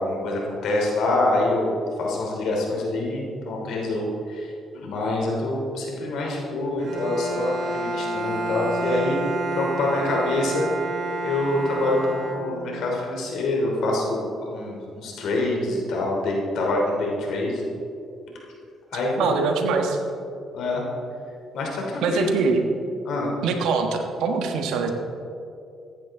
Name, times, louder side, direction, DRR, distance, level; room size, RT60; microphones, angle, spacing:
voice 1, 0.0-9.2 9.5-10.7 11.2-17.6 18.9-19.5 20.5-20.8 21.5-22.3 23.0-23.3, left 2 dB, 75° left, -1 dB, 3.1 m, -26 dB
Bowed string instrument, 6.8-12.9, right 2 dB, 55° right, 2.7 m, -30 dB
voice 2, 19.2-20.0 22.0-22.6 23.4-24.9, right 4 dB, 85° right, 4 dB, 1.4 m, -23 dB
15.0 x 10.5 x 3.8 m, 2.5 s
supercardioid pair, 70°, 0 cm